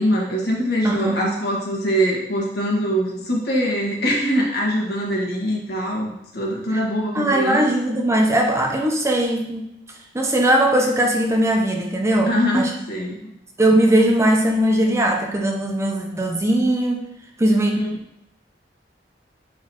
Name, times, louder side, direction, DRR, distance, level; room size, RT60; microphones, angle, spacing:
voice 1, 0.0-7.6 12.3-13.3 17.7-17.9, equal, 65° left, -2 dB, 1.6 m, -23 dB
voice 2, 0.8-1.3 7.1-9.7 10.1-12.7 13.6-17.1 17.4-17.7, right 1 dB, 15° right, 2 dB, 0.7 m, -19 dB
8.8 x 3.9 x 2.9 m, 0.83 s
head